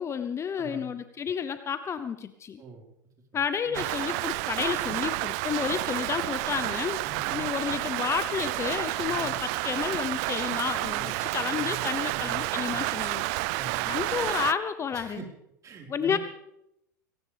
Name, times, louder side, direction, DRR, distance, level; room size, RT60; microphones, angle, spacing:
voice 1, 0.0-2.6 3.3-7.0 7.3-13.3 13.9-15.2 15.9-16.2, left 7 dB, 25° left, 11 dB, 0.9 m, -31 dB
voice 2, 0.5-0.9 2.6-2.9 3.6-3.8 7.0-7.4 9.0-9.4 10.9-12.8 13.5-14.0 14.9-15.3 15.6-16.2, right 5 dB, 30° right, 0 dB, 4.8 m, -44 dB
Rain, 3.7-14.5, right 21 dB, 55° right, 0.5 m, -30 dB
22.0 x 18.0 x 3.5 m, 0.81 s
hypercardioid pair, 90°, 10 cm